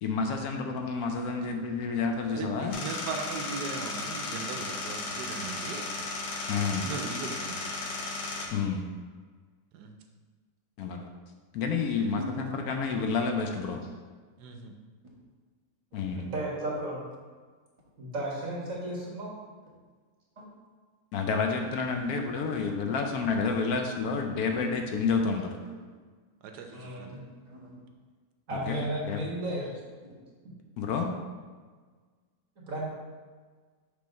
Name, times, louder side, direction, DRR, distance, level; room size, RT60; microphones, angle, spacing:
voice 1, 0.0-2.7 6.5-6.8 8.5-8.9 10.8-11.1 11.5-13.8 15.9-16.3 21.1-25.5 28.5-29.2 30.8-31.1, left 5 dB, 70° left, 4 dB, 1.0 m, -29 dB
voice 2, 2.3-5.9 6.8-7.7 9.7-10.0 14.4-14.7 26.4-27.2, right 4 dB, 80° right, 4 dB, 1.2 m, -38 dB
sound 1, 2.7-8.5, left 3 dB, 90° left, 1.4 m, -35 dB
voice 3, 12.0-12.6 13.7-13.8 20.4-20.5 21.9-22.1 22.7-23.0 24.1-24.6 27.0-27.8 30.0-30.2, equal, 20° right, -5 dB, 1.2 m, -43 dB
voice 4, 16.2-17.0 18.0-19.3 26.7-27.2 28.5-29.7 32.7-32.9, right 1 dB, 55° right, -4 dB, 1.9 m, -34 dB
6.8 x 3.2 x 5.2 m, 1.5 s
omnidirectional pair, 1.8 m